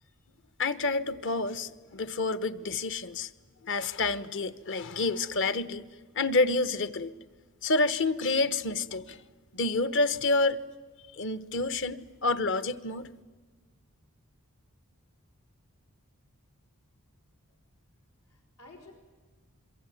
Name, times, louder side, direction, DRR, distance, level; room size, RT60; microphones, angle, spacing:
voice 1, 0.1-0.4 9.7-9.8 17.5-17.6 18.2-18.9, left 2 dB, 85° left, 5.0 m, -54 dB
voice 2, 0.6-3.3 3.6-5.9 6.1-7.1 7.6-9.2 9.5-10.6 11.1-13.1, left 3 dB, 55° left, 1.1 m, -28 dB
26.5 x 23.0 x 9.3 m
head